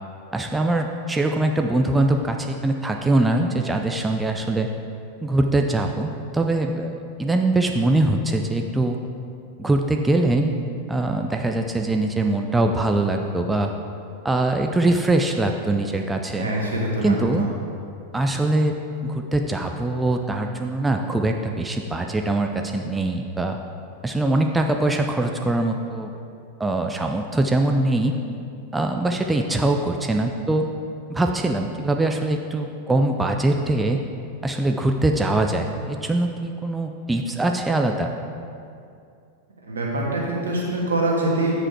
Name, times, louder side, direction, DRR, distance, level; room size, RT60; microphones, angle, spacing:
voice 1, 0.3-4.7 5.2-9.0 9.6-10.6 10.9-13.7 14.2-16.5 17.0-17.5 18.1-18.8 19.0-23.6 24.0-26.1 26.6-28.1 28.7-30.6 31.1-34.0 34.4-38.1, right 2 dB, 10° right, 4 dB, 0.4 m, -22 dB
voice 2, 16.4-17.5 39.7-41.6, right 1 dB, 70° right, -3 dB, 1.7 m, -24 dB
8.5 x 5.1 x 4.7 m, 2.5 s
figure-of-eight pair, 90°, 0 cm